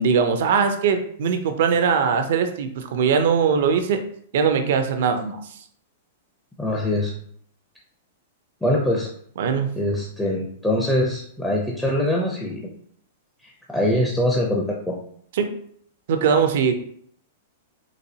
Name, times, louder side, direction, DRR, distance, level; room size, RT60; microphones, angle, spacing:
voice 1, 0.0-4.0 4.3-5.6 9.4-9.8 15.4-15.6 16.1-16.7, right 6 dB, 65° right, 7 dB, 0.6 m, -21 dB
voice 2, 6.6-7.1 8.6-9.1 9.8-12.7 13.4-15.0, left 1 dB, 5° left, -3 dB, 0.6 m, -23 dB
4.1 x 2.6 x 2.8 m, 0.64 s
hypercardioid pair, 125°, 0 cm